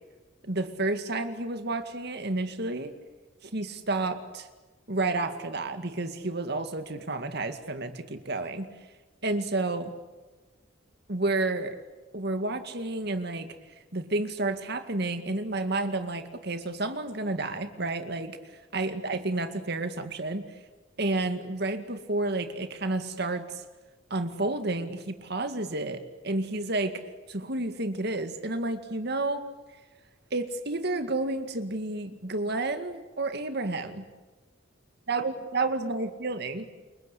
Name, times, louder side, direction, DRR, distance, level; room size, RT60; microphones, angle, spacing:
voice 1, 0.4-2.9 3.4-4.5 4.9-8.7 9.2-9.9 11.1-11.8 12.1-13.5 13.9-18.4 18.7-20.4 21.0-23.6 24.1-27.0 27.3-29.4 30.3-34.1 35.1-36.6, right 2 dB, 55° right, 8 dB, 2.2 m, -30 dB
29.0 x 23.5 x 8.5 m, 1.2 s
head